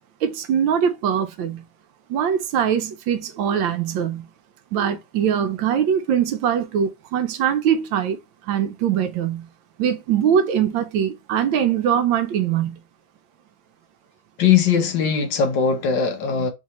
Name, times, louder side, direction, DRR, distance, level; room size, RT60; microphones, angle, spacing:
voice 1, 0.2-1.6 2.1-4.3 4.7-9.5 9.8-12.8, right 8 dB, 75° right, 1.3 m, -22 dB
voice 2, 14.4-16.5, left 7 dB, 70° left, 1.4 m, -20 dB
3.8 x 2.8 x 2.9 m
omnidirectional pair, 2.2 m